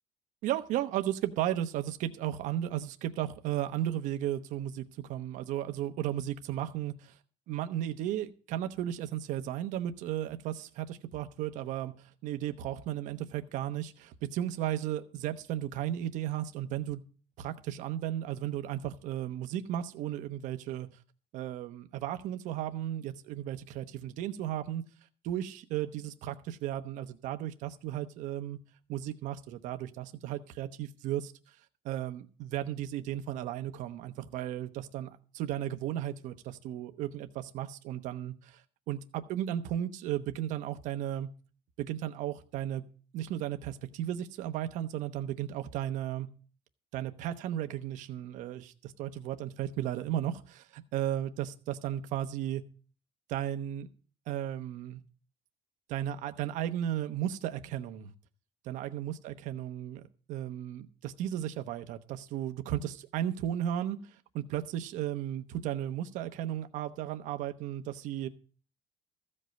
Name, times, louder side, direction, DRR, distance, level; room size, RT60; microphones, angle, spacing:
voice 1, 0.4-7.1 7.5-17.0 17.4-20.9 21.3-24.8 25.2-28.6 28.9-31.3 31.8-38.6 38.9-41.3 41.8-42.8 43.1-46.3 46.9-52.6 53.3-53.9 54.3-55.0 55.9-58.1 58.6-68.3, right 11 dB, 75° right, 8 dB, 1.0 m, -35 dB
14.5 x 5.4 x 7.7 m, 0.39 s
cardioid pair, 135°, 13 cm